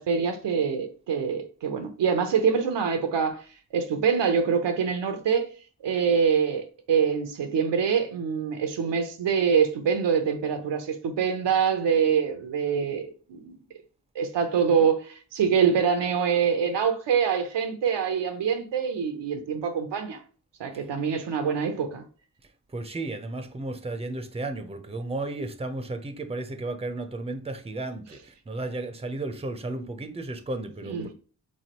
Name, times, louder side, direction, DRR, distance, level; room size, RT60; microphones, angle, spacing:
voice 1, 0.0-3.4 3.7-5.5 5.8-13.6 14.1-20.2 20.6-22.0 30.9-31.1, right 6 dB, 85° right, 0.7 m, -25 dB
voice 2, 22.7-31.1, right 2 dB, 15° right, 0.6 m, -34 dB
3.6 x 3.1 x 2.9 m
cardioid pair, 45°, 41 cm